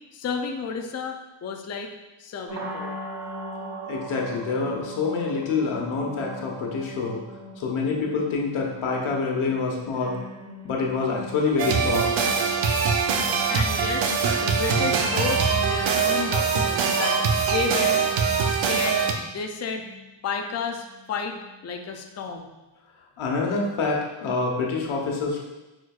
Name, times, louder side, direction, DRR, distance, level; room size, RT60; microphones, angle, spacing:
voice 1, 0.1-1.9 2.2-3.0 13.5-14.1 14.4-17.2 17.5-18.1 18.4-19.0 19.3-19.8 20.2-22.5, left 5 dB, 35° left, 4 dB, 0.5 m, -31 dB
sound 1, 2.5-22.3, equal, 55° right, 1.4 m, -42 dB
voice 2, 3.9-7.2 7.6-10.2 10.6-12.2 23.2-25.4, left 4 dB, 90° left, 0 dB, 1.3 m, -26 dB
sound 2, 11.6-19.1, right 5 dB, 75° right, 0.8 m, -23 dB
9.2 x 4.4 x 2.4 m, 1.1 s
wide cardioid pair, 140°, 47 cm